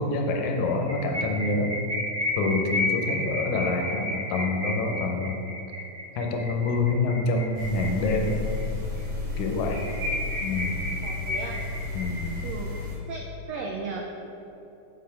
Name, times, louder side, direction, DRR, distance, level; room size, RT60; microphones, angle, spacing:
voice 1, 0.0-1.7 2.4-5.4 6.2-8.4 9.4-9.8 10.4-10.8 11.9-12.3, left 3 dB, 75° left, 2 dB, 2.0 m, -26 dB
sound 1, 0.7-8.6 9.0-9.1 9.3-9.4 9.7-12.8, left 1 dB, 45° right, 0.9 m, -32 dB
sound 2, 7.5-13.0, left 3 dB, 70° right, 3.5 m, -33 dB
voice 2, 11.0-11.6 12.4-12.7 13.1-14.3, right 4 dB, 85° right, 0 dB, 1.4 m, -35 dB
8.6 x 4.2 x 5.6 m, 3.0 s
omnidirectional pair, 3.7 m